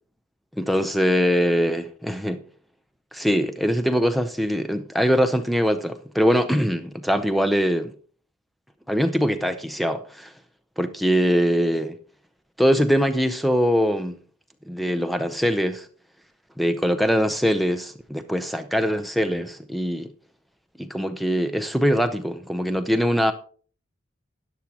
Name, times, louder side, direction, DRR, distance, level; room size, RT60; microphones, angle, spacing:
voice 1, 0.6-2.4 3.1-7.9 8.9-10.3 10.8-12.0 12.6-14.2 14.7-15.9 16.6-20.1 20.8-23.3, equal, ahead, 0.6 m, -22 dB
13.0 x 9.8 x 2.9 m
head